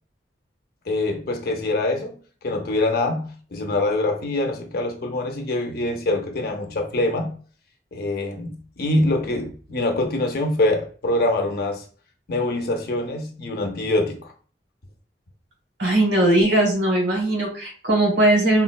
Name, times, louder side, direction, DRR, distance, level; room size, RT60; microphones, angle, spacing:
voice 1, 0.9-2.1 2.4-7.4 7.9-11.8 12.3-14.3, left 2 dB, 55° left, 0.5 m, -24 dB
voice 2, 15.8-18.6, right 1 dB, 80° right, 1.1 m, -19 dB
3.8 x 2.0 x 2.2 m
head